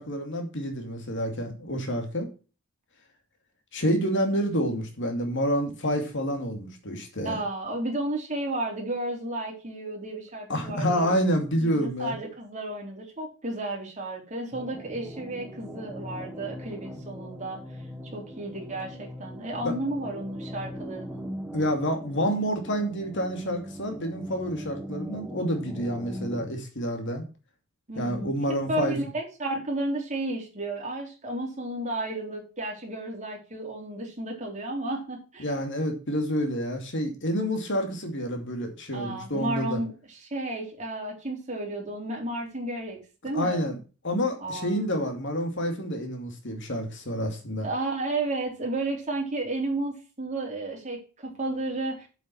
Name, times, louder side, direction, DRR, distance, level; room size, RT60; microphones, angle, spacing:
voice 1, 0.0-2.3 3.7-7.4 10.5-12.2 19.6-19.7 21.5-27.3 28.0-29.0 35.4-39.8 43.3-43.8 44.0-47.7, equal, 60° left, 5 dB, 2.5 m, -28 dB
voice 2, 7.2-11.1 11.6-17.8 18.1-21.2 27.9-35.5 38.9-43.0 43.2-43.6 44.4-44.8 47.6-52.1, right 2 dB, 35° right, 0 dB, 3.7 m, -32 dB
sound 1, 14.5-26.5, equal, 5° right, 1.3 m, -40 dB
7.9 x 7.4 x 5.8 m, 0.34 s
head